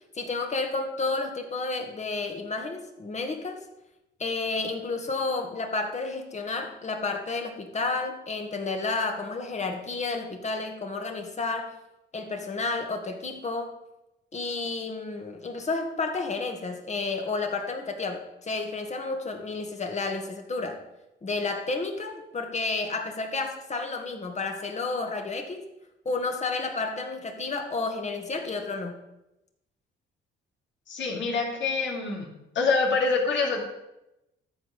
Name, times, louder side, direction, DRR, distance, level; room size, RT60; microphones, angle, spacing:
voice 1, 0.1-3.6 4.2-11.8 12.1-13.7 14.3-20.8 21.2-25.7 26.1-29.0, left 3 dB, 35° left, 4 dB, 2.2 m, -31 dB
voice 2, 30.9-32.3 32.5-33.6, left 4 dB, 70° left, -1 dB, 3.2 m, -25 dB
13.5 x 4.9 x 7.4 m, 0.90 s
cardioid pair, 90°, 20 cm